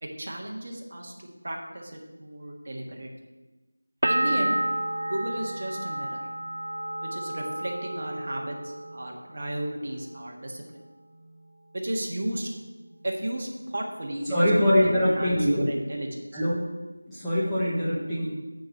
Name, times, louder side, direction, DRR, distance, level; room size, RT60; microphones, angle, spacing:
voice 1, 0.0-3.1 4.1-4.6 5.1-6.2 7.0-10.8 11.7-12.5 13.0-14.8 15.2-16.4, right 1 dB, 40° right, 0 dB, 1.4 m, -34 dB
sound 1, 4.0-9.7 10.0-10.7, right 1 dB, 75° right, 0.5 m, -31 dB
voice 2, 14.3-15.7 16.3-16.6 17.1-18.3, equal, 5° left, -14 dB, 1.0 m, -23 dB
9.4 x 4.6 x 6.4 m, 1.2 s
figure-of-eight pair, 175°, 0 cm